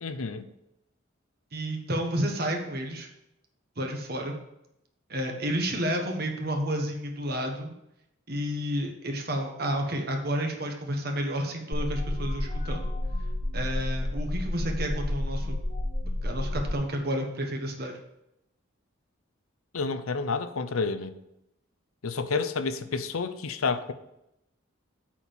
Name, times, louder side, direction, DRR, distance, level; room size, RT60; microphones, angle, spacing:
voice 1, 0.0-0.5 19.7-21.2 22.0-23.9, left 4 dB, 85° left, 0.7 m, -30 dB
voice 2, 1.5-3.1 3.8-4.4 5.1-7.7 8.3-12.9 13.5-15.6 16.2-17.9, equal, 45° right, 1.3 m, -31 dB
sound 1, 11.7-16.7, left 1 dB, 35° left, 1.1 m, -30 dB
8.5 x 4.5 x 7.1 m
head